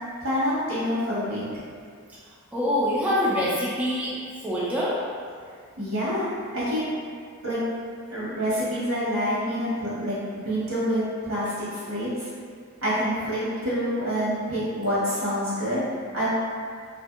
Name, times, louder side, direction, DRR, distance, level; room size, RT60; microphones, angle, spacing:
voice 1, 0.2-1.5 5.8-6.8 7.4-7.6 8.1-10.2 10.4-12.3 12.8-15.8 16.1-16.3, equal, 85° right, -10 dB, 1.2 m, -27 dB
voice 2, 2.5-4.1 4.4-4.9, left 1 dB, 5° right, -8 dB, 0.3 m, -24 dB
2.6 x 2.6 x 2.3 m, 2.1 s
head